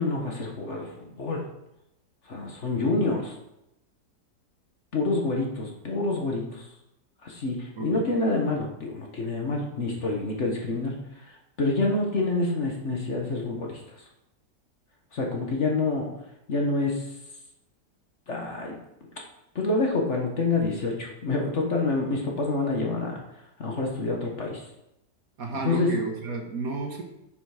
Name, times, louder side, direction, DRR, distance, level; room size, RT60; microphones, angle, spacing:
voice 1, 0.0-1.4 2.3-3.3 4.9-6.6 7.2-10.9 11.6-13.8 15.1-16.1 16.5-17.0 18.3-18.7 19.5-23.1 23.6-24.6 25.6-25.9, left 3 dB, 45° left, 0 dB, 1.6 m, -27 dB
voice 2, 25.4-27.1, right 3 dB, 55° right, 1 dB, 1.8 m, -32 dB
10.0 x 5.9 x 5.0 m, 0.88 s
omnidirectional pair, 1.8 m